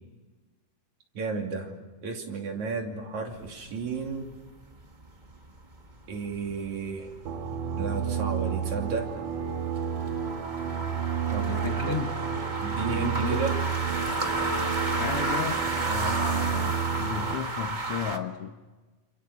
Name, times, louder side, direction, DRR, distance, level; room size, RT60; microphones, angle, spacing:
voice 1, 1.2-1.7 2.0-4.3 6.1-7.1 7.8-9.1 11.3-12.0 12.6-13.6, right 4 dB, 65° right, 4.2 m, -33 dB
sound 1, 3.3-18.2, right 2 dB, 30° right, 0.9 m, -33 dB
sound 2, 7.3-17.4, right 7 dB, 90° right, 3.2 m, -31 dB
Wind instrument woodwind instrument, 8.8-13.2 13.8-16.1, right 6 dB, 45° right, 2.1 m, -42 dB
voice 2, 11.4-12.2 12.9-13.4 14.9-18.6, left 7 dB, 60° left, 1.7 m, -34 dB
28.5 x 28.5 x 7.0 m
omnidirectional pair, 3.6 m